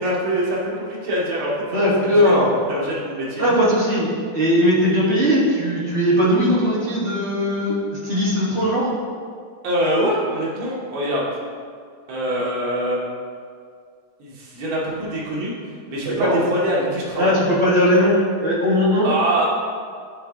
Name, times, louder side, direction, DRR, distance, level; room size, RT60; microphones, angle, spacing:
voice 1, 0.0-2.4 2.7-3.4 9.6-11.2 12.1-13.0 14.2-15.5 15.9-17.4 19.0-19.5, right 1 dB, 85° right, -5 dB, 2.0 m, -24 dB
voice 2, 1.7-2.5 3.4-7.8 8.0-8.9 16.0-16.4 17.2-18.2 18.4-19.1, equal, 35° right, -8 dB, 1.6 m, -19 dB
11.0 x 3.8 x 3.6 m, 2.1 s
omnidirectional pair, 2.2 m